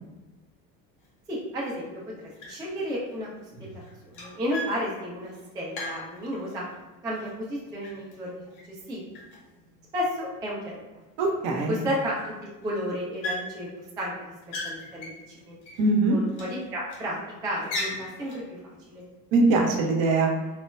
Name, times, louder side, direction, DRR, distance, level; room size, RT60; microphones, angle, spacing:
domestic foley changing light bulbs at home, 1.0-1.1 1.6-2.0 2.3-2.8 3.1-6.7 7.1-8.8 9.1-10.1 10.7-10.8 11.0-11.1 11.5-12.2 12.5-12.7 13.2-13.9 14.2-15.9 16.3-17.1 17.5-18.5, left 1 dB, 65° left, 0.8 m, -39 dB
voice 1, 1.3-1.9 2.2-3.3 3.6-6.6 7.0-8.4 8.7-9.1 9.9-11.0 11.7-12.3 12.6-14.1 14.6-15.6 16.1-19.0, equal, 10° right, -4 dB, 0.3 m, -33 dB
voice 2, 11.2-11.8 15.8-16.2 19.3-20.3, right 3 dB, 50° right, 1 dB, 0.6 m, -22 dB
3.1 x 2.1 x 2.2 m, 1.1 s
figure-of-eight pair, 65°, 48 cm